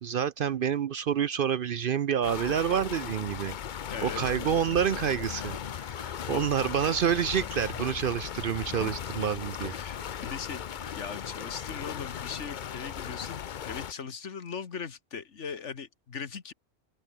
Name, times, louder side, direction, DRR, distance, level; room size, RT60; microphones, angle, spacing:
voice 1, 0.0-3.6 4.0-5.5 6.0-9.7, right 8 dB, 60° right, 0.6 m, -28 dB
sound 1, 2.2-13.9, left 8 dB, 50° left, 0.7 m, -37 dB
voice 2, 3.9-4.3 6.0-6.5 8.7-9.3 9.7-13.4 13.7-16.5, left 6 dB, 75° left, 1.7 m, -39 dB
sound 2, 4.2-11.4, left 2 dB, 25° left, 2.1 m, -51 dB
sound 3, 6.4-11.8, left 1 dB, 10° left, 1.5 m, -54 dB
open air
omnidirectional pair, 1.2 m